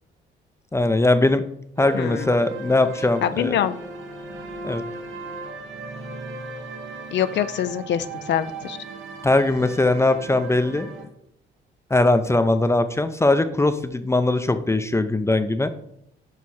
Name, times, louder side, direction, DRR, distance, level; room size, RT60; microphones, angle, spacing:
voice 1, 0.7-1.4 1.8-3.6 4.6-4.8 9.2-10.9 11.9-15.7, left 2 dB, 15° left, 9 dB, 0.5 m, -20 dB
sound 1, 1.8-11.0, right 2 dB, 75° right, 1.2 m, -36 dB
voice 2, 1.9-2.3 3.2-3.8 7.1-8.8, left 10 dB, 65° left, 12 dB, 0.4 m, -24 dB
6.4 x 4.6 x 4.2 m, 0.73 s
cardioid pair, 90°, 20 cm